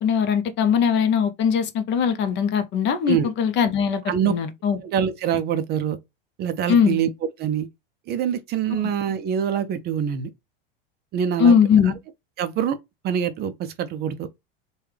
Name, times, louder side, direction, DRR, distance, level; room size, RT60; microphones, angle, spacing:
voice 1, 0.0-4.8 6.7-7.0 8.8-8.9 11.4-12.0, left 7 dB, 40° left, 0.6 m, -20 dB
voice 2, 4.8-6.0 6.4-7.1 7.4-7.7 8.1-10.3 11.1-11.6 11.8-11.9 12.4-12.8 13.0-14.3, right 8 dB, 35° right, 0.4 m, -24 dB
3.3 x 2.2 x 3.2 m
supercardioid pair, 110°, 29 cm